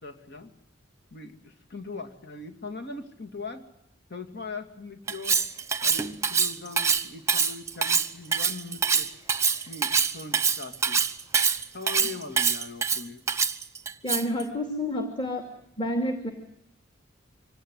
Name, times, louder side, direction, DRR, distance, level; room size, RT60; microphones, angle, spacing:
voice 1, 0.0-0.5 1.1-3.7 4.1-5.4 5.8-9.1 9.7-11.0 11.7-13.2, left 3 dB, 60° left, 6 dB, 2.7 m, -40 dB
Cutlery silverware, 5.1-14.4, right 6 dB, 15° right, 1.1 m, -25 dB
voice 2, 14.0-15.4 15.8-16.3, left 1 dB, 25° left, 5 dB, 2.7 m, -29 dB
25.0 x 18.0 x 9.6 m, 0.79 s
head